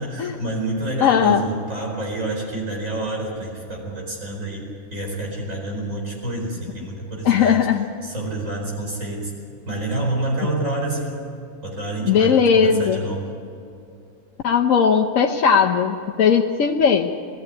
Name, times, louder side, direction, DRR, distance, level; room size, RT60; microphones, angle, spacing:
voice 1, 0.0-7.7 8.0-9.3 9.7-11.3 11.6-13.3, right 2 dB, 80° right, -1 dB, 5.1 m, -28 dB
voice 2, 1.0-1.4 7.2-7.9 12.0-13.0 14.4-17.1, left 7 dB, 85° left, 2 dB, 1.2 m, -18 dB
20.0 x 14.0 x 9.5 m, 2.6 s
omnidirectional pair, 1.3 m